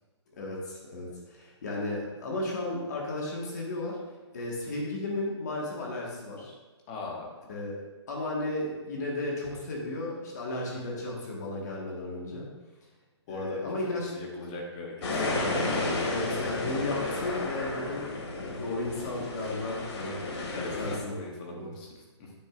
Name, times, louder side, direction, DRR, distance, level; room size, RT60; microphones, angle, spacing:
voice 1, 0.3-4.0 4.3-6.5 7.5-7.8 8.1-12.5 13.3-14.1 16.1-20.2 20.8-21.1 21.5-21.7, left 2 dB, 35° left, -3 dB, 1.5 m, -34 dB
voice 2, 6.9-7.3 13.3-13.6 13.9-15.3 20.5-22.3, left 3 dB, 15° left, -1 dB, 0.8 m, -40 dB
sound 1, 15.0-21.0, left 2 dB, 70° left, 2.0 m, -32 dB
9.2 x 7.4 x 2.5 m, 1.2 s
hypercardioid pair, 175°, 15 cm